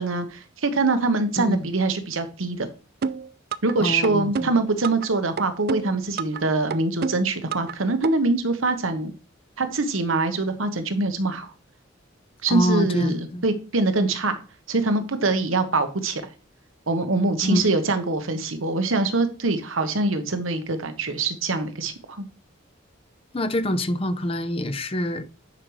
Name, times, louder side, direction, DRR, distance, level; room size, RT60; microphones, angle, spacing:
voice 1, 0.0-2.7 3.6-9.1 9.6-11.5 12.4-14.4 14.7-16.2 16.9-22.3, right 3 dB, 85° right, 1.0 m, -24 dB
voice 2, 1.4-1.7 3.8-4.5 12.5-13.4 17.4-17.6 23.3-25.3, left 1 dB, 30° left, 0.6 m, -25 dB
sound 1, 3.0-3.7 4.0-5.1 5.4-6.4 6.7-7.7 8.0-8.1, right 5 dB, 50° right, 0.4 m, -28 dB
9.9 x 5.1 x 3.1 m
head